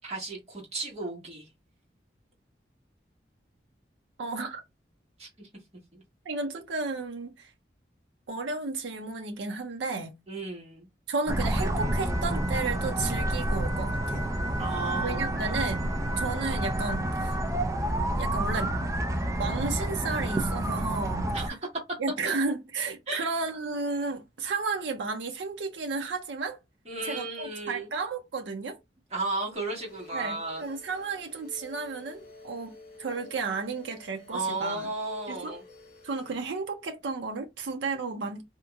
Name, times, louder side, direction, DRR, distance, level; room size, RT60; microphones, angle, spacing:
voice 1, 0.0-1.5 5.2-5.5 5.9-6.0 10.3-10.9 14.6-15.3 21.3-21.5 23.1-23.3 26.9-27.9 29.1-30.6 34.3-35.6, right 3 dB, 35° right, 1.6 m, -34 dB
voice 2, 4.2-4.6 6.3-7.5 8.3-10.1 11.1-14.3 15.0-17.4 18.2-18.9 19.4-21.3 22.0-26.6 27.0-28.8 30.1-32.7 33.0-34.9 35.3-35.6 36.0-38.4, right 4 dB, 85° right, 0.5 m, -33 dB
sound 1, 11.3-21.5, right 1 dB, 15° right, 0.3 m, -29 dB
sound 2, 29.5-36.4, left 2 dB, 40° left, 1.5 m, -51 dB
3.5 x 2.8 x 2.3 m
head